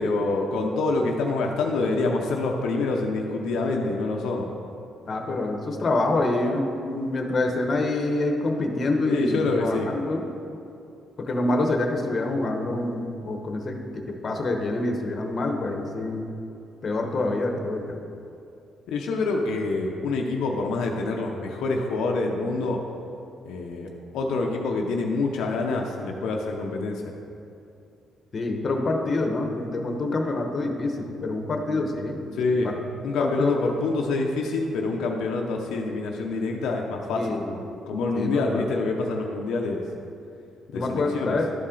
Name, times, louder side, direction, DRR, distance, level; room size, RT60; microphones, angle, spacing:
voice 1, 0.0-4.5 9.0-9.9 18.9-22.8 23.4-23.9 24.1-27.0 32.3-32.7 33.0-37.4 37.9-39.8 40.7-41.4, left 3 dB, 85° left, 1 dB, 0.6 m, -26 dB
voice 2, 5.1-10.2 11.2-16.2 16.8-18.0 28.3-32.4 32.6-32.8 33.2-33.5 37.1-37.7 38.1-38.7 40.7-41.5, left 2 dB, 45° left, 3 dB, 0.9 m, -26 dB
11.5 x 4.2 x 3.8 m, 2.6 s
cardioid pair, 90°, 0 cm